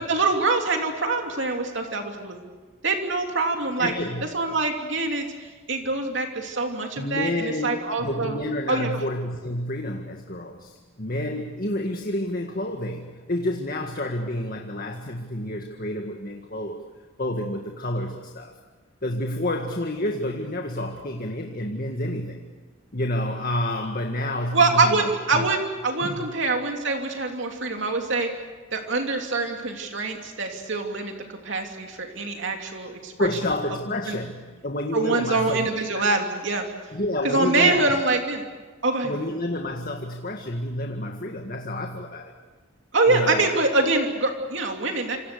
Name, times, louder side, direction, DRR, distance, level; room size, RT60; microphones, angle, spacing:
voice 1, 0.1-2.4 2.8-3.9 4.3-8.4 8.7-9.0 24.5-28.3 28.7-33.3 34.1-34.2 34.9-36.7 37.2-38.4 38.8-39.2 42.9-45.2, right 3 dB, 60° right, 3 dB, 2.9 m, -24 dB
voice 2, 3.8-4.2 7.0-16.8 17.2-18.6 19.0-22.5 22.9-25.5 26.0-26.3 33.2-36.0 36.9-37.9 39.0-42.3 43.1-43.5, left 1 dB, 45° left, 3 dB, 1.9 m, -29 dB
28.0 x 27.5 x 6.9 m, 1.4 s
head